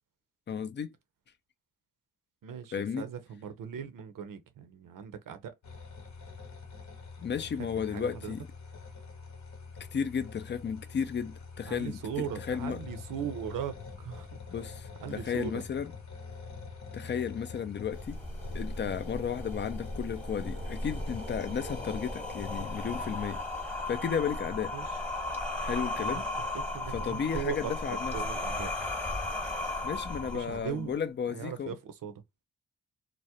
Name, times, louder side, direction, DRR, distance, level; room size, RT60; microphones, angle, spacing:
voice 1, 0.5-0.9 2.7-3.1 7.2-8.5 9.9-12.8 14.5-15.9 16.9-18.2 18.5-23.4 23.9-24.7 25.6-26.3 26.9-28.1 29.8-31.8, left 7 dB, 30° left, 0.4 m, -34 dB
voice 2, 2.4-5.5 7.8-8.3 11.7-14.4 15.0-15.6 24.7-25.0 25.9-26.3 26.7-28.7 30.3-30.9 31.3-32.2, right 8 dB, 65° right, 0.6 m, -39 dB
sound 1, 5.6-23.2, left 5 dB, 50° left, 0.8 m, -45 dB
sound 2, 17.9-30.9, left 2 dB, 5° left, 1.0 m, -36 dB
2.3 x 2.0 x 2.7 m
supercardioid pair, 50°, 35 cm